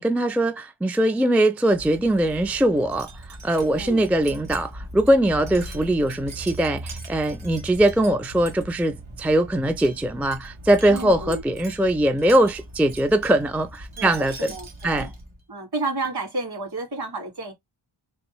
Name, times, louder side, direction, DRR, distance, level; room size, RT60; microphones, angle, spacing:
voice 1, 0.0-14.5 14.8-15.1, right 1 dB, 5° right, 0.3 m, -21 dB
Wind chime, 1.7-15.4, right 1 dB, 80° right, 1.8 m, -39 dB
voice 2, 3.7-4.0 10.9-11.4 14.0-14.7 14.9-15.1 15.5-17.5, right 2 dB, 55° right, 2.0 m, -31 dB
3.7 x 3.4 x 2.9 m
wide cardioid pair, 90°, 47 cm